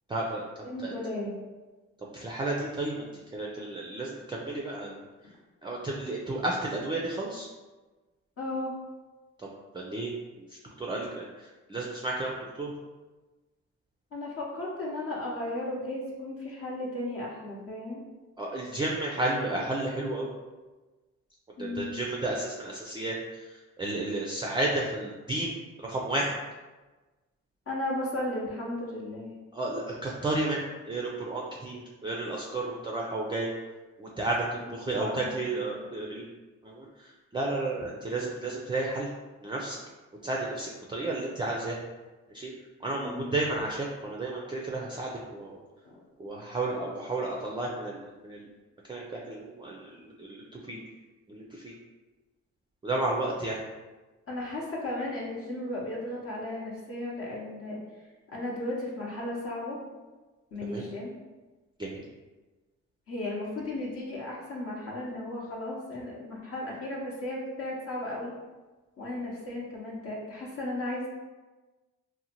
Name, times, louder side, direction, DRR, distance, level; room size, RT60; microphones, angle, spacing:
voice 1, 0.1-1.0 2.0-5.0 5.6-7.5 9.7-10.1 10.4-12.7 18.4-20.3 21.6-26.3 29.5-33.5 34.0-36.2 36.6-39.1 39.4-39.8 40.2-41.8 42.3-42.5 42.8-45.6 46.2-48.5 48.9-50.8 51.3-51.7 52.8-53.6 60.7-60.8 61.8-62.1, right 2 dB, 15° right, -2 dB, 0.4 m, -32 dB
voice 2, 0.6-1.4 8.4-8.7 14.1-18.0 21.6-22.1 27.7-29.4 34.9-36.0 37.8-37.9 42.9-43.3 45.8-46.0 54.3-57.8 58.3-59.8 60.5-61.1 63.1-68.3 69.0-71.1, left 1 dB, 45° left, -4 dB, 0.8 m, -35 dB
2.7 x 2.1 x 2.8 m, 1.2 s
supercardioid pair, 60°, 32 cm